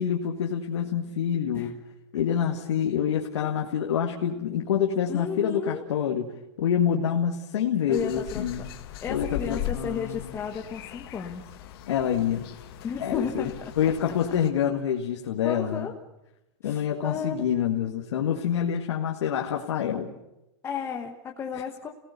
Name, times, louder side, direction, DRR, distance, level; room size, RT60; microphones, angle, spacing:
voice 1, 0.0-1.8 2.1-8.7 9.1-10.3 11.9-12.5 13.0-13.5 13.8-15.9 16.6-20.1, left 8 dB, 80° left, 1 dB, 2.0 m, -27 dB
voice 2, 3.3-3.8 5.1-5.8 7.9-8.4 9.0-11.5 12.8-13.5 15.4-15.9 16.6-17.4 20.6-21.9, left 6 dB, 15° left, 1 dB, 1.3 m, -33 dB
sound 1, 7.9-14.5, left 12 dB, 55° left, 1.9 m, -39 dB
29.0 x 18.0 x 6.9 m, 0.93 s
supercardioid pair, 155°, 14 cm